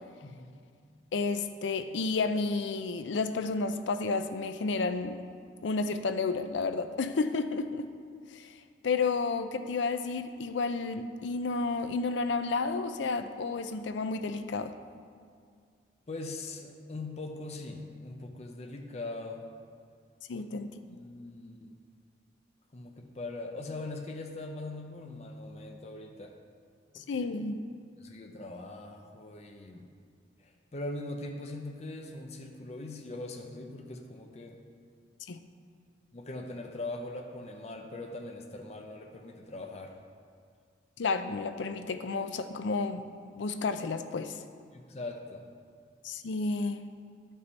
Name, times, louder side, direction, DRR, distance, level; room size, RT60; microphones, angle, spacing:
voice 1, 0.2-0.6 16.1-19.4 20.3-20.4 20.9-21.7 22.7-26.3 26.9-27.3 28.0-29.9 30.4-34.6 36.1-40.0 44.7-45.5, left 2 dB, 35° left, 3 dB, 0.5 m, -41 dB
voice 2, 1.1-5.2 5.6-7.9 8.3-8.5 8.8-14.7 20.3-21.0 26.9-27.6 35.3-35.4 41.0-44.4 46.0-46.8, left 4 dB, 85° left, 9 dB, 0.5 m, -31 dB
11.0 x 5.4 x 4.1 m, 2.1 s
head